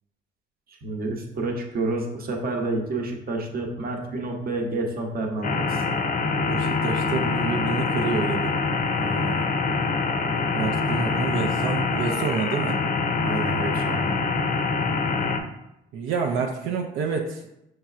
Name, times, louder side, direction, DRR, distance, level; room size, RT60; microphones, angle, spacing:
voice 1, 0.7-5.8 9.0-9.4 13.2-14.2, right 2 dB, 50° right, 2 dB, 0.8 m, -29 dB
sound 1, 5.4-15.4, left 4 dB, 45° left, 0.5 m, -25 dB
voice 2, 6.4-8.5 10.5-12.8 15.9-17.4, right 5 dB, 85° right, 1 dB, 0.5 m, -28 dB
5.5 x 3.2 x 2.4 m, 0.85 s
cardioid pair, 90°, 20 cm